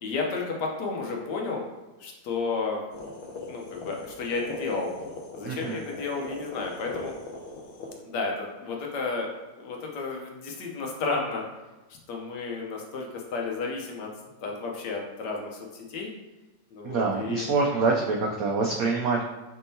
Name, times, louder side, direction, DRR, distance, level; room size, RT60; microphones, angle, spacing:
voice 1, 0.0-1.6 2.0-2.8 3.5-4.9 5.3-7.1 8.0-9.3 9.6-11.4 12.1-14.1 14.4-16.1 16.7-17.5, left 4 dB, 65° left, 0 dB, 1.2 m, -32 dB
sound 1, 2.9-7.9, left 3 dB, 90° left, 1.5 m, -40 dB
voice 2, 5.4-5.8 16.8-19.2, right 3 dB, 85° right, -1 dB, 0.7 m, -25 dB
5.3 x 3.6 x 2.7 m, 1.1 s
omnidirectional pair, 2.1 m